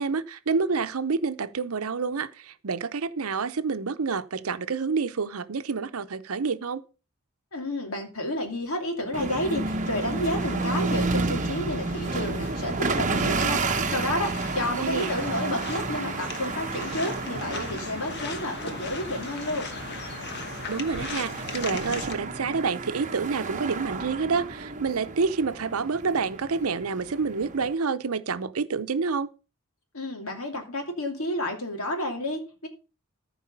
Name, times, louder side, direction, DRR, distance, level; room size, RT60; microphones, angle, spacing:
voice 1, 0.0-6.8 14.8-15.1 20.7-29.3, right 5 dB, 85° right, 0.7 m, -28 dB
voice 2, 7.5-19.7 29.9-32.7, left 1 dB, 80° left, 2.7 m, -31 dB
sound 1, 9.1-27.7, right 3 dB, 35° right, 0.9 m, -31 dB
sound 2, 9.9-22.1, left 4 dB, 55° left, 1.2 m, -39 dB
14.0 x 4.8 x 5.3 m
head